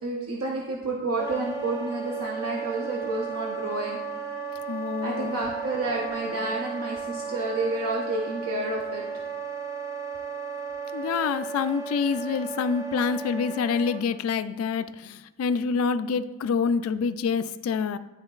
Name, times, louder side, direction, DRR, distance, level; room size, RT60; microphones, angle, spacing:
voice 1, 0.0-4.0 5.0-9.0, right 2 dB, 80° right, 0.8 m, -30 dB
Wind instrument woodwind instrument, 1.2-14.0, right 5 dB, 15° right, 0.6 m, -35 dB
voice 2, 4.7-5.4 10.9-18.0, left 5 dB, 75° left, 0.3 m, -27 dB
11.5 x 3.9 x 2.4 m
head